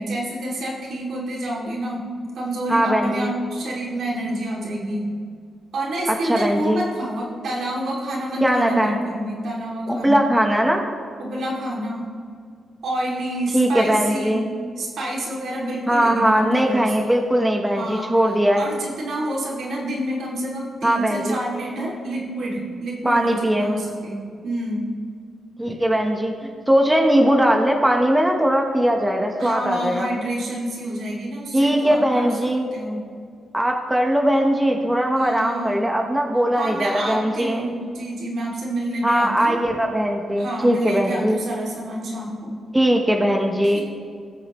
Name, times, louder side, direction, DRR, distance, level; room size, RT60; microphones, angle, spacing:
voice 1, 0.0-2.0 2.3-5.1 5.7-10.3 11.2-12.1 12.8-14.4 14.8-16.9 17.7-18.1 18.6-24.8 29.4-32.3 32.7-33.0 35.2-35.8 36.5-39.6 40.4-42.5 43.6-43.8, right 1 dB, 70° right, -3 dB, 2.7 m, -28 dB
voice 2, 2.7-3.3 6.1-6.8 8.4-9.0 9.9-10.8 13.5-14.5 15.9-18.6 20.8-21.4 23.0-23.7 25.6-30.1 31.5-32.7 33.5-37.7 39.0-41.4 42.7-43.8, equal, 10° right, 2 dB, 1.1 m, -20 dB
18.5 x 6.7 x 3.1 m, 2.2 s
cardioid pair, 80°, 0 cm